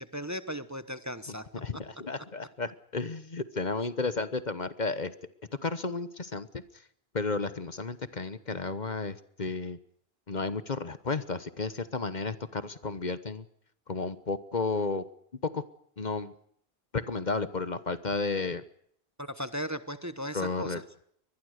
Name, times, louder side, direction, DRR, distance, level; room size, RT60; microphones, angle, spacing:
voice 1, 0.0-1.5 19.2-20.8, equal, 15° right, 12 dB, 1.1 m, -36 dB
voice 2, 1.3-5.1 5.6-6.5 7.1-9.8 10.3-13.4 13.9-15.0 15.4-15.6 16.0-16.3 16.9-18.6 20.3-20.8, left 4 dB, 45° left, 14 dB, 1.2 m, -32 dB
24.0 x 20.5 x 6.5 m, 0.68 s
omnidirectional pair, 1.0 m